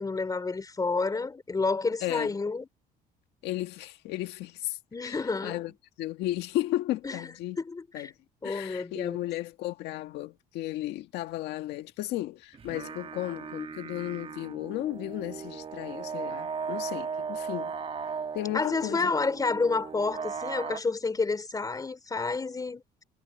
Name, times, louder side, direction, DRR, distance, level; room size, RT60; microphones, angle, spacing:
voice 1, 0.0-2.7 4.9-5.6 7.0-8.1 8.4-9.2 18.5-22.8, left 4 dB, 20° left, 3.7 m, -30 dB
voice 2, 2.0-2.3 3.4-5.7 6.0-7.6 7.9-8.1 8.4-17.7 18.3-19.1, left 15 dB, 85° left, 1.8 m, -34 dB
sound 1, 12.5-20.8, right 5 dB, 35° right, 1.2 m, -37 dB
cardioid pair, 110°, 17 cm